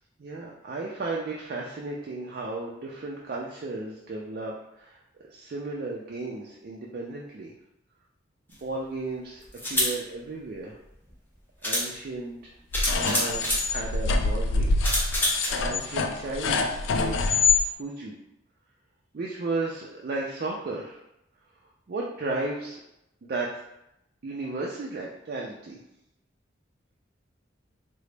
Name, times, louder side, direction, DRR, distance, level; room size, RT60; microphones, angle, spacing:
voice 1, 0.2-5.0 5.3-7.5 8.6-9.4 9.7-10.8 11.6-12.5 12.9-14.8 15.0-15.1 15.5-17.2 17.8-18.2 19.1-21.0 21.9-22.8 23.2-23.5 24.2-25.8, right 3 dB, 50° right, -2 dB, 0.4 m, -34 dB
sound 1, 8.5-8.6 9.5-9.9 11.1-11.2 11.6-11.9 12.7-13.7 14.8-15.5, left 1 dB, 10° left, 0.7 m, -26 dB
sound 2, 12.7-17.6, left 4 dB, 80° left, 0.3 m, -25 dB
3.7 x 2.0 x 3.2 m, 0.84 s
head